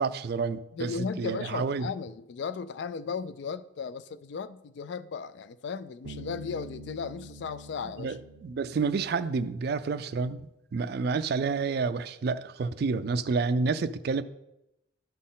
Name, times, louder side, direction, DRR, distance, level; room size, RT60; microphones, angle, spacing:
voice 1, 0.0-1.9 8.0-10.4 10.7-14.2, right 4 dB, 50° right, 0.3 m, -29 dB
voice 2, 0.7-8.2, left 5 dB, 60° left, 0.3 m, -36 dB
Bass guitar, 6.0-9.7, right 1 dB, 90° right, 0.6 m, -46 dB
12.0 x 4.2 x 3.8 m
head